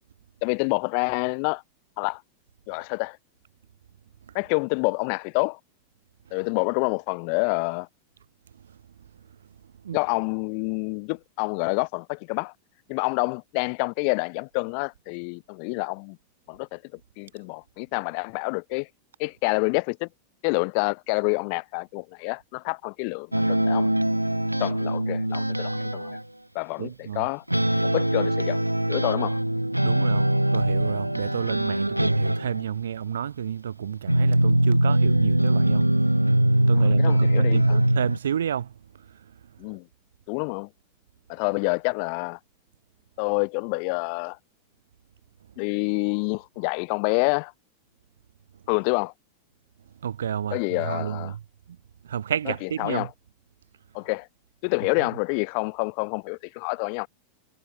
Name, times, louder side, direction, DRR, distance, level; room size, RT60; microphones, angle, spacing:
voice 1, 0.4-1.6 2.0-2.2 2.7-3.2 4.3-5.6 6.3-7.9 9.9-12.5 12.9-16.2 16.5-16.8 17.2-18.9 19.2-20.1 20.4-24.0 24.6-26.2 26.5-27.4 27.9-28.6 28.9-29.4 36.8-37.8 39.6-39.8 40.3-40.7 41.3-42.4 43.2-44.4 45.6-47.5 48.7-49.1 50.5-51.3 52.4-53.1 53.9-54.3 54.6-57.1, left 40 dB or more, 45° left, 1.4 m, -27 dB
sound 1, 23.3-26.2 27.5-32.7 34.1-38.2, right 1 dB, 85° right, 2.9 m, -22 dB
voice 2, 26.8-27.2 29.8-35.9 36.7-38.7 50.0-51.4 52.1-53.1, right 9 dB, 65° right, 6.0 m, -30 dB
figure-of-eight pair, 90°, 0 cm